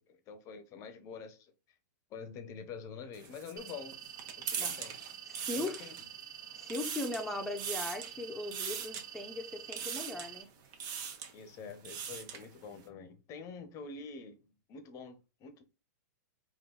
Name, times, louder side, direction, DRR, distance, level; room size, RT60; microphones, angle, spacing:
voice 1, 0.0-1.5 2.1-4.0 4.4-5.0 5.5-6.0 11.3-15.6, left 5 dB, 35° left, 0.8 m, -46 dB
sound 1, 3.1-6.2 6.5-7.3 7.6-8.1 8.5-9.0 9.7-10.3 10.7-11.3 11.7-12.5, right 7 dB, 45° right, 1.0 m, -40 dB
sound 2, 3.6-10.4, right 9 dB, 80° right, 1.1 m, -48 dB
voice 2, 5.3-5.9 6.5-10.5, left 2 dB, 5° left, 0.8 m, -39 dB
3.8 x 2.6 x 3.8 m
hypercardioid pair, 130°, 10 cm